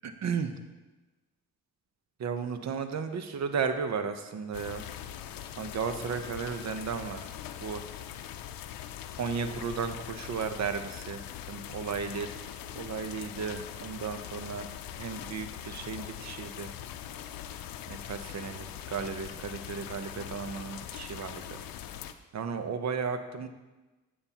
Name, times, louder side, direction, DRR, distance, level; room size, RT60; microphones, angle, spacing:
voice 1, 0.0-0.5 2.2-4.9 5.6-7.2 7.6-7.8 9.2-11.2 11.5-12.3 12.7-14.7 15.0-16.7 17.9-21.6 22.3-23.5, right 6 dB, 55° right, 8 dB, 0.8 m, -34 dB
sound 1, 4.5-22.1, left 10 dB, 80° left, 0.6 m, -42 dB
9.0 x 8.5 x 2.9 m, 1.2 s
cardioid pair, 95°, 34 cm